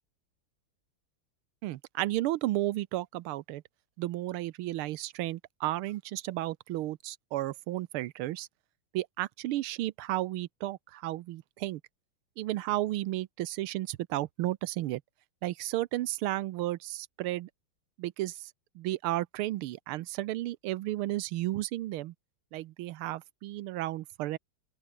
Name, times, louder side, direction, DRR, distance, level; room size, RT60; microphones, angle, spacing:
voice 1, 1.6-3.6 4.0-8.5 8.9-11.8 12.4-15.0 15.4-17.5 18.0-22.1 22.5-24.4, right 16 dB, 85° right, 1.5 m, -33 dB
open air
omnidirectional pair, 2.4 m